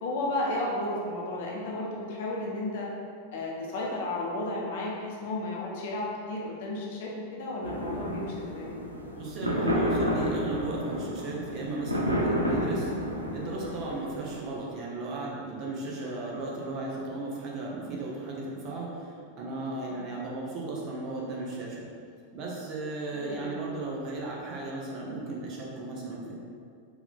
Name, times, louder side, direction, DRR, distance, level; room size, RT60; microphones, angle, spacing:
voice 1, 0.0-2.9 3.3-8.7 13.9-14.1 19.9-20.1 23.1-23.5, left 2 dB, 50° left, -3 dB, 0.8 m, -33 dB
sound 1, 7.6-14.4, equal, 85° right, 0.5 m, -31 dB
voice 2, 9.1-12.9 13.3-21.8 22.3-26.4, right 2 dB, 40° right, -3 dB, 0.9 m, -35 dB
4.6 x 2.7 x 3.6 m, 2.3 s
figure-of-eight pair, 90°, 0 cm